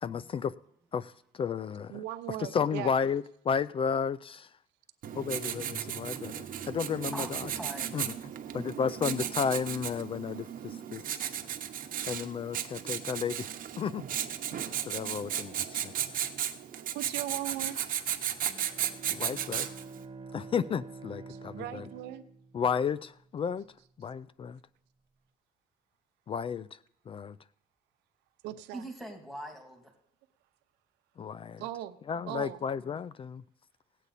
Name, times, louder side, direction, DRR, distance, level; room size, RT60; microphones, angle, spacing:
voice 1, 0.0-0.5 0.9-2.0 2.5-4.5 5.1-7.5 7.9-8.1 8.5-11.2 12.1-13.5 13.8-14.0 14.9-15.9 19.1-19.7 20.3-21.8 22.5-23.6 24.0-24.6 26.3-26.8 27.1-27.4 31.2-31.6 32.1-33.4, left 6 dB, 35° left, 0.3 m, -33 dB
voice 2, 1.9-3.0 16.9-17.8 21.3-22.2 28.4-28.9 31.6-32.0 32.3-32.6, right 13 dB, 90° right, 0.8 m, -38 dB
Writing, 5.0-20.0, right 10 dB, 55° right, 1.0 m, -35 dB
voice 3, 7.1-8.0 28.7-29.9, right 1 dB, ahead, 2.4 m, -42 dB
Bowed string instrument, 18.4-23.0, right 4 dB, 25° right, 1.4 m, -47 dB
17.5 x 8.3 x 4.1 m
cardioid pair, 110°, 17 cm